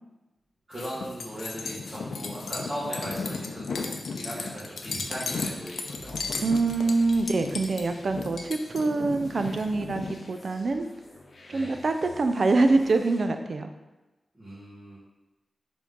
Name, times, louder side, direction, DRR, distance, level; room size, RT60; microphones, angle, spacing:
sound 1, 0.7-10.2, left 4 dB, 90° left, 0.6 m, -35 dB
voice 1, 0.7-3.8 4.1-6.2 11.5-11.8 14.3-15.0, equal, 35° right, -12 dB, 1.7 m, -38 dB
sound 2, 5.9-13.3, left 1 dB, 50° left, 0.9 m, -51 dB
voice 2, 6.4-10.9 11.5-13.7, right 3 dB, 50° right, 7 dB, 0.5 m, -25 dB
5.0 x 3.7 x 5.3 m, 1.1 s
wide cardioid pair, 150°, 0 cm